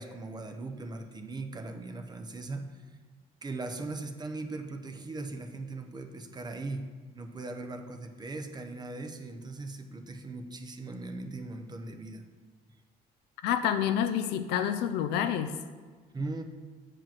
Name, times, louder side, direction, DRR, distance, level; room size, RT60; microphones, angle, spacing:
voice 1, 0.0-3.0 3.4-6.9 7.1-12.2 16.1-16.4, right 2 dB, 25° right, 6 dB, 0.7 m, -39 dB
voice 2, 13.4-15.5, left 9 dB, 90° left, 9 dB, 0.5 m, -28 dB
7.5 x 5.0 x 5.8 m, 1.5 s
cardioid pair, 110°, 17 cm